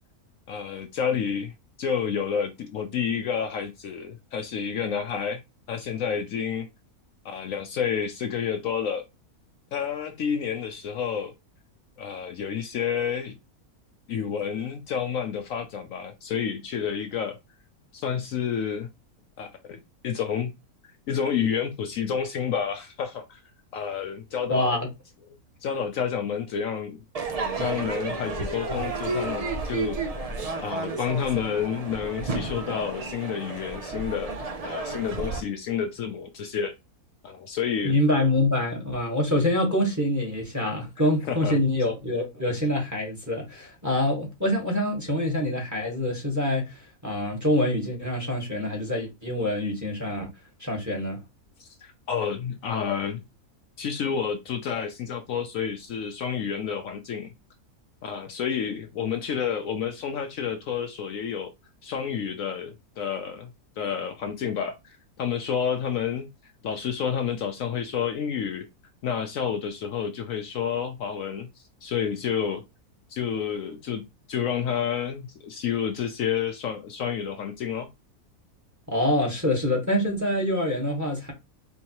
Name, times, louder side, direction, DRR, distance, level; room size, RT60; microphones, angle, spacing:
voice 1, 0.5-1.5 1.8-5.4 5.7-6.7 7.2-9.0 9.7-11.3 12.0-13.3 14.1-17.4 17.9-18.9 19.4-20.5 21.1-23.4 23.7-24.8 25.6-27.0 27.6-30.3 30.6-34.3 34.6-36.7 37.2-38.0 41.3-41.6 51.6-53.2 53.8-57.3 58.0-61.5 61.8-63.5 63.8-66.3 66.6-68.7 69.0-71.5 71.8-72.6 73.1-74.0 74.3-77.9, left 7 dB, 65° left, 0.9 m, -29 dB
voice 2, 24.5-24.9 37.8-50.3 50.6-51.2 78.9-81.3, left 1 dB, 10° right, 1.3 m, -25 dB
Crowd / Fireworks, 27.1-35.4, right 3 dB, 75° right, 0.3 m, -32 dB
4.6 x 3.1 x 2.9 m
omnidirectional pair, 1.6 m